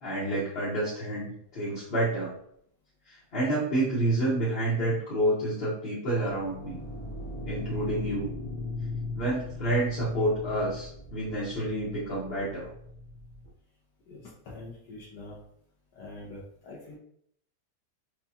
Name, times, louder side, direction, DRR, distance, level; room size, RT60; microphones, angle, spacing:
voice 1, 0.0-2.3 3.1-6.8 7.4-8.3 9.2-12.7, right 1 dB, 45° left, -9 dB, 1.1 m, -29 dB
sound 1, 6.3-13.5, left 2 dB, 15° left, 0.3 m, -38 dB
voice 2, 14.1-15.4 15.9-17.0, left 2 dB, 80° left, -5 dB, 1.3 m, -44 dB
4.7 x 2.2 x 2.8 m, 0.69 s
omnidirectional pair, 1.7 m